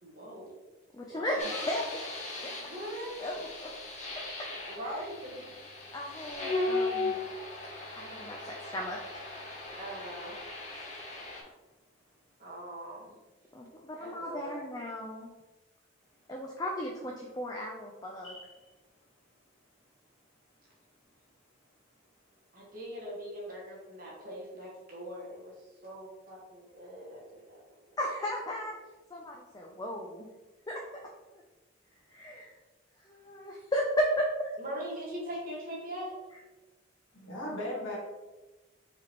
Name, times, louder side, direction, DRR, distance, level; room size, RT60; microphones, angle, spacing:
voice 1, 0.0-0.5 1.1-1.3 2.3-3.2 4.7-5.5 9.7-10.4 12.4-13.1 14.0-14.6 22.5-25.5 25.8-27.6 34.6-36.1, equal, 45° right, -4 dB, 1.4 m, -41 dB
voice 2, 0.9-2.1 2.4-2.5 3.2-3.7 4.8-5.0 5.9-7.2 8.0-9.0 10.8-11.2 13.5-15.3 16.3-18.3 28.0-28.8 29.1-30.3 30.7-30.8 31.3-31.4 32.1-32.5 33.0-34.5, equal, 20° left, -1 dB, 0.4 m, -35 dB
sound 1, 1.4-11.4, left 2 dB, 35° left, 0.8 m, -37 dB
voice 3, 18.2-18.7 37.1-38.0, left 1 dB, 80° left, -5 dB, 1.4 m, -38 dB
4.7 x 3.5 x 3.0 m, 1.1 s
head